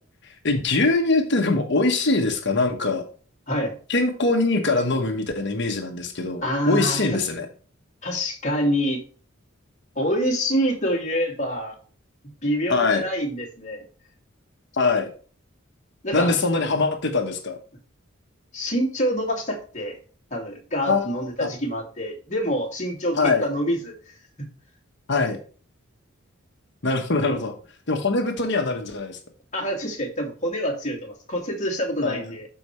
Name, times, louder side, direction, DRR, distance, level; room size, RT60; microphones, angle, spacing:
voice 1, 0.4-3.0 3.9-7.5 12.7-13.0 14.7-15.1 16.1-17.6 20.8-21.5 23.1-23.4 25.1-25.4 26.8-27.5 27.9-29.2 32.0-32.2, left 3 dB, 55° left, 5 dB, 1.2 m, -23 dB
voice 2, 6.4-7.0 8.0-9.0 10.0-11.7 12.4-13.8 16.0-16.3 18.5-20.0 20.3-24.5 27.3-27.4 29.5-32.5, equal, 35° left, 0 dB, 2.5 m, -26 dB
13.0 x 4.8 x 3.2 m, 0.40 s
head